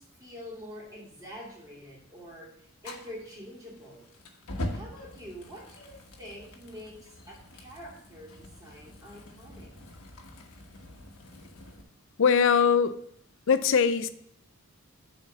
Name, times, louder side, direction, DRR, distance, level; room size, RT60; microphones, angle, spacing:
voice 1, 0.0-4.1 4.7-9.7, equal, 15° right, -5 dB, 2.4 m, -46 dB
Fire, 2.8-11.8, left 1 dB, 90° left, 1.3 m, -43 dB
voice 2, 12.2-13.0 13.5-14.1, left 6 dB, 60° left, 13 dB, 0.5 m, -21 dB
6.7 x 4.4 x 6.7 m, 0.68 s
head